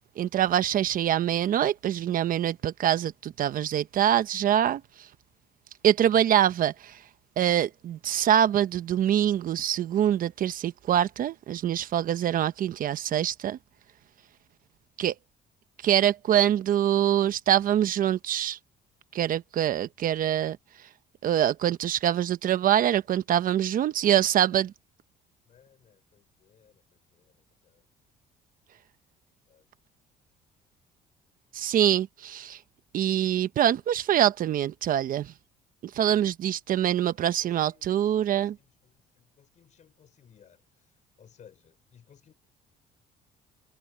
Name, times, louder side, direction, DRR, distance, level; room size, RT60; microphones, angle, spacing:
voice 1, 0.2-4.8 5.8-6.7 7.4-13.6 15.0-15.1 15.8-18.6 19.1-20.6 21.2-24.7 31.5-32.6 32.9-35.3 35.9-38.6, right 10 dB, 55° right, 0.9 m, -24 dB
voice 2, 39.6-40.6 41.2-41.5 41.9-42.3, left 8 dB, 45° left, 5.1 m, -54 dB
cardioid pair, 110°, 17 cm